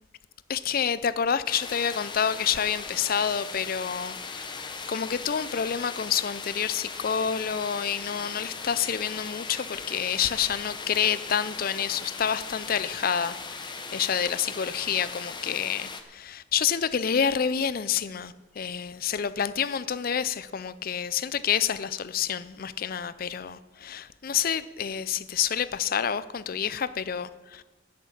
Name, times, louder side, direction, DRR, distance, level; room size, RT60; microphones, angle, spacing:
voice 1, 0.5-13.4 13.9-27.6, left 8 dB, 45° left, 0.4 m, -28 dB
sound 1, 1.4-16.0, left 4 dB, 20° left, 0.8 m, -38 dB
11.0 x 6.8 x 8.6 m
head